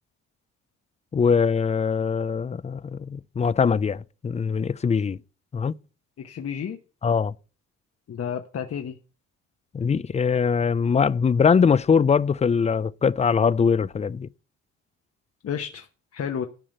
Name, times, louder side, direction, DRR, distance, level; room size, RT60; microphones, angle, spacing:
voice 1, 1.1-5.2 5.5-5.7 7.0-7.3 9.7-14.3, left 6 dB, 25° left, 0.4 m, -22 dB
voice 2, 6.2-6.8 8.1-9.0 15.4-15.9 16.1-16.5, left 8 dB, 50° left, 1.1 m, -31 dB
12.5 x 5.0 x 7.7 m
cardioid pair, 90°, 30 cm